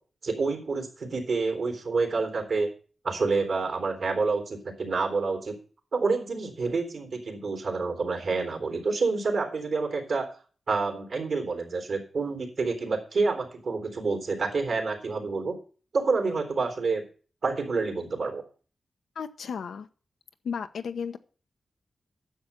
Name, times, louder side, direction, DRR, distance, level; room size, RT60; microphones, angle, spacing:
voice 1, 0.2-2.7 3.0-5.6 5.9-10.3 10.7-15.5 15.9-17.0 17.4-18.4, right 4 dB, 70° right, 3 dB, 3.4 m, -28 dB
voice 2, 19.2-19.9 20.4-21.2, left 6 dB, 90° left, 8 dB, 1.0 m, -34 dB
10.0 x 7.2 x 6.7 m, 0.39 s
cardioid pair, 75°, 0 cm